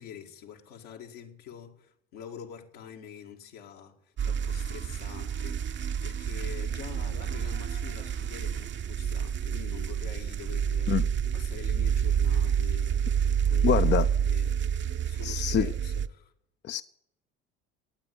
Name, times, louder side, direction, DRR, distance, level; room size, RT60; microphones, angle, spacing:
voice 1, 0.0-11.0 11.3-13.8 14.3-14.6 15.0-16.3, left 8 dB, 75° left, 2.2 m, -46 dB
sound 1, 4.2-16.1, right 8 dB, 40° right, 0.8 m, -28 dB
voice 2, 13.6-14.1 15.2-15.7 16.6-16.8, left 9 dB, 35° left, 0.6 m, -25 dB
19.0 x 8.6 x 8.3 m
hypercardioid pair, 70°, 30 cm